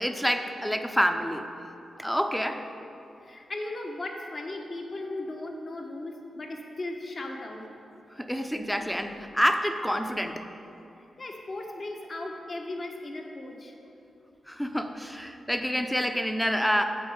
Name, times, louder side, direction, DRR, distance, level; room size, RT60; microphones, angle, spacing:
voice 1, 0.0-1.5 2.0-2.6 8.1-10.5 14.5-16.8, equal, 5° left, 6 dB, 0.7 m, -27 dB
voice 2, 3.2-7.6 11.2-13.8, left 2 dB, 45° left, 2 dB, 1.2 m, -37 dB
8.2 x 4.7 x 7.3 m, 2.8 s
supercardioid pair, 45°, 0 cm